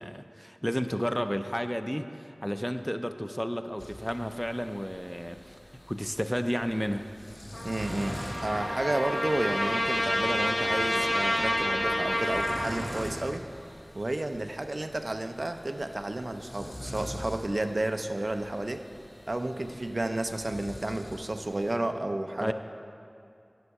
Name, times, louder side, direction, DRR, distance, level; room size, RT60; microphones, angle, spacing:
voice 1, 0.0-5.5 5.9-7.1 22.4-22.5, equal, 5° left, 8 dB, 0.4 m, -32 dB
sound 1, 3.8-21.8, equal, 55° left, 1.4 m, -45 dB
Trumpet, 7.5-12.7, left 1 dB, 85° left, 1.5 m, -29 dB
voice 2, 7.6-13.4 14.0-18.8 19.3-22.5, right 1 dB, 60° right, 7 dB, 0.4 m, -31 dB
sound 2, 7.8-13.0, right 1 dB, 85° right, 1.0 m, -38 dB
9.7 x 6.2 x 4.7 m, 2.5 s
wide cardioid pair, 45°, 0 cm